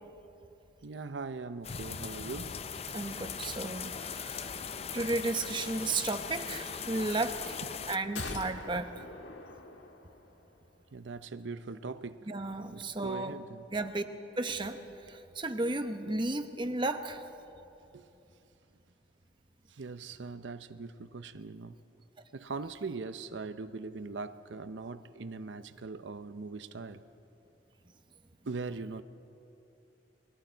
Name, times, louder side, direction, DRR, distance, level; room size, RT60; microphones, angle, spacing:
voice 1, 0.8-2.6 7.8-7.9 10.9-12.3 12.7-13.7 17.9-18.1 19.7-21.8 22.3-27.0 28.5-29.0, right 4 dB, 85° right, 11 dB, 0.6 m, -41 dB
sound 1, 1.6-8.0, left 6 dB, 35° left, 0.5 m, -39 dB
voice 2, 2.9-7.6 7.9-9.1 12.3-13.3 13.7-14.0 14.4-14.8 15.1-17.2, right 2 dB, 25° right, 7 dB, 0.9 m, -34 dB
sound 2, 8.1-10.5 10.8-10.9, left 3 dB, 85° left, 1.6 m, -43 dB
29.5 x 21.0 x 4.5 m, 2.8 s
head